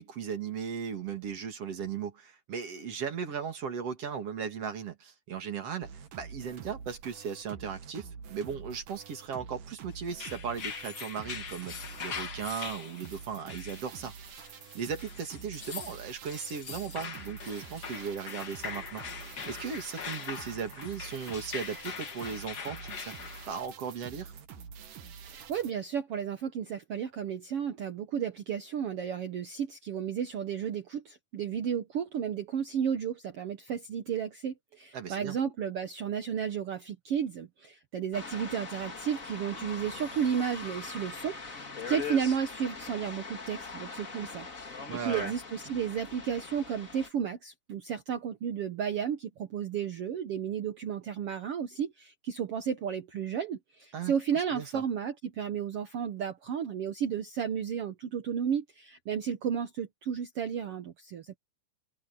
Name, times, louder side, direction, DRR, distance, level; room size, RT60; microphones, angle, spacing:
voice 1, 0.0-14.1 14.7-23.1 23.5-24.3 34.9-35.4 44.9-45.3 53.9-54.8, right 7 dB, 45° right, 2.9 m, -37 dB
sound 1, 5.8-25.7, right 6 dB, 65° right, 3.4 m, -47 dB
sound 2, 10.0-23.5, left 6 dB, 60° left, 1.0 m, -42 dB
voice 2, 25.3-61.4, right 8 dB, 80° right, 1.3 m, -33 dB
sound 3, 38.1-47.1, left 4 dB, 25° left, 2.0 m, -41 dB
open air
omnidirectional pair, 4.3 m